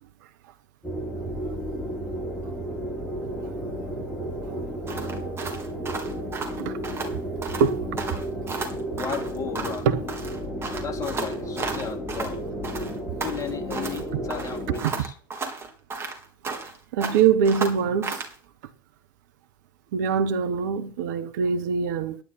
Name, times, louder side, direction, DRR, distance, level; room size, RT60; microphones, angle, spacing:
sound 1, 0.8-14.8, right 1 dB, 5° left, 7.3 m, -33 dB
sound 2, 4.9-7.1 7.4-7.7 8.0-9.8 10.1-12.4 12.6-14.0 14.3-16.8 17.0-18.3, right 4 dB, 20° right, 3.7 m, -33 dB
voice 1, 6.6-7.1 7.6-7.9 9.8-10.0 14.8-14.9 16.9-18.3 19.9-22.2, right 6 dB, 60° right, 1.1 m, -23 dB
voice 2, 8.9-10.1 10.8-12.4 13.2-15.1, left 7 dB, 30° left, 3.1 m, -35 dB
11.0 x 11.0 x 6.2 m
figure-of-eight pair, 75°, 11 cm